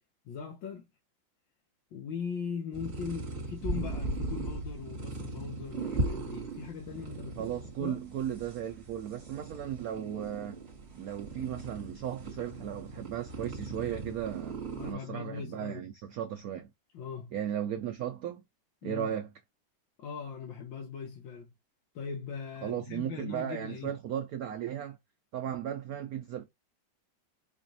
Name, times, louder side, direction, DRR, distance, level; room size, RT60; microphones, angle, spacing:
voice 1, 0.3-0.9 1.9-7.5 7.8-8.0 14.7-15.9 16.9-17.3 18.8-19.1 20.0-21.5 22.0-23.9, left 6 dB, 75° left, 1.6 m, -40 dB
sound 1, 2.7-14.9, right 2 dB, 45° right, 1.5 m, -38 dB
voice 2, 7.4-10.6 11.0-16.7 17.3-18.4 18.8-19.3 22.6-25.0 25.3-26.4, right 10 dB, 75° right, 0.8 m, -36 dB
5.1 x 2.4 x 2.7 m
omnidirectional pair, 2.1 m